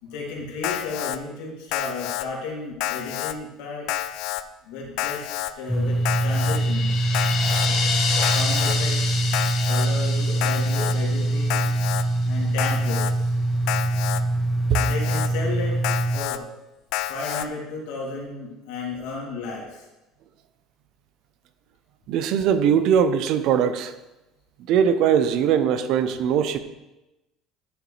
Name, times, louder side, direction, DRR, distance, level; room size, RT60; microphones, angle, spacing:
voice 1, 0.0-3.9 4.6-7.1 8.3-9.3 9.7-11.7 12.3-13.3 14.8-15.8 16.1-16.4 17.1-19.8, left 3 dB, 90° left, -3 dB, 2.8 m, -33 dB
Alarm, 0.6-1.2 1.7-2.2 2.8-3.3 3.9-4.4 5.0-5.5 6.0-6.6 7.1-7.7 8.2-8.8 9.3-9.9 10.4-10.9 11.5-12.0 12.6-13.1 13.7-14.2 14.7-15.3 15.8-16.4 16.9-17.4, left 14 dB, 65° left, 0.4 m, -29 dB
sound 1, 5.7-16.2, right 2 dB, 5° left, 0.6 m, -24 dB
sound 2, 6.1-12.3, left 5 dB, 50° left, 1.3 m, -29 dB
voice 2, 22.1-23.9 24.7-26.6, right 8 dB, 55° right, 11 dB, 0.6 m, -20 dB
11.5 x 6.8 x 3.3 m, 0.99 s
cardioid pair, 155°, 0 cm